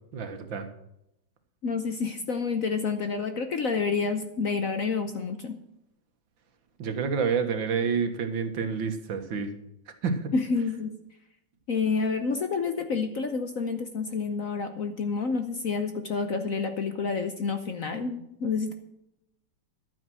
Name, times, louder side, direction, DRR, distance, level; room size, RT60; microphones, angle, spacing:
voice 1, 0.1-0.7 6.8-9.5 10.0-10.3, right 5 dB, 70° right, 7 dB, 2.0 m, -28 dB
voice 2, 1.6-5.6 10.3-10.9 11.7-18.7, left 4 dB, 55° left, 7 dB, 1.0 m, -29 dB
12.0 x 9.0 x 6.2 m, 0.82 s
omnidirectional pair, 2.2 m